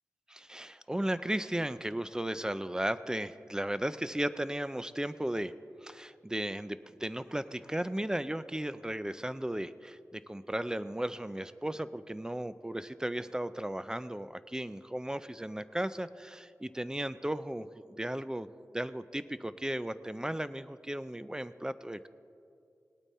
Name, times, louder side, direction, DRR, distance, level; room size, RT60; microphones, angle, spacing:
voice 1, 0.3-5.5 5.8-18.5 18.7-22.1, right 1 dB, 10° right, 14 dB, 0.4 m, -35 dB
19.0 x 8.9 x 4.2 m, 2.5 s
cardioid pair, 55°, 6 cm